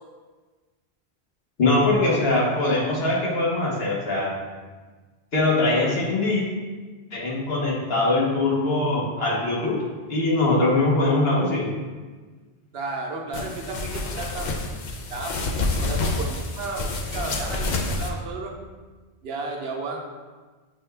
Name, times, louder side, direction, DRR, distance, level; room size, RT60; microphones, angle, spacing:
voice 1, 1.6-4.3 5.3-6.4 7.1-9.8 10.1-11.7, left 2 dB, 70° left, -4 dB, 1.3 m, -22 dB
voice 2, 12.7-14.5 15.1-18.5 19.2-20.0, right 3 dB, 70° right, 0 dB, 0.9 m, -33 dB
sound 1, 13.3-18.1, left 3 dB, 55° left, 0.6 m, -28 dB
6.8 x 2.3 x 3.2 m, 1.4 s
omnidirectional pair, 1.1 m